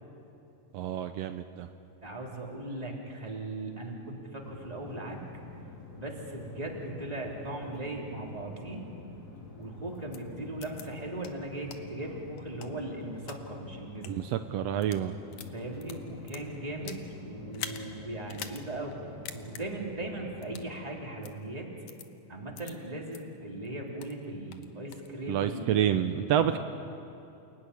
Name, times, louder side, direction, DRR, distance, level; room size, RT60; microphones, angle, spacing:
voice 1, 0.7-1.7 14.0-15.1 25.3-26.6, right 10 dB, 85° right, 9 dB, 1.4 m, -28 dB
voice 2, 2.0-5.2 5.9-8.9 9.6-14.2 15.5-19.0 19.3-21.7 22.3-26.0 26.4-26.6, right 2 dB, 10° right, -1 dB, 3.2 m, -38 dB
sound 1, 4.4-20.8, left 3 dB, 30° left, 3.1 m, -47 dB
sound 2, 10.1-10.2 10.6-10.8 11.2-11.3 11.7-11.8 12.4-13.4 13.9-14.1 14.7-15.0 15.3-17.1 17.5-17.8 18.3-18.6 18.9-19.0 19.3-19.6 20.4-20.7 21.2-21.3 21.9-22.1 22.6-22.7 23.1-23.2 23.6-24.2 24.5-25.1, left 9 dB, 65° left, 2.2 m, -43 dB
28.5 x 17.5 x 9.9 m, 2.7 s
omnidirectional pair, 3.8 m